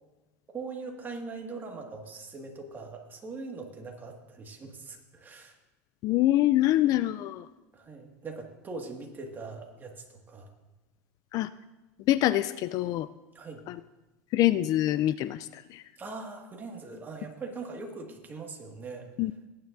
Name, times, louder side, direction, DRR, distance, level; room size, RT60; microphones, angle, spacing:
voice 1, 0.5-5.6 7.7-10.5 13.3-13.6 16.0-19.1, right 3 dB, 20° right, 2 dB, 1.8 m, -41 dB
voice 2, 6.0-7.5 11.3-11.5 12.1-13.1 13.7-13.8 14.3-15.8 19.2-19.3, left 14 dB, 45° left, 15 dB, 0.4 m, -25 dB
18.0 x 9.6 x 2.6 m, 1.1 s
supercardioid pair, 120°, 8 cm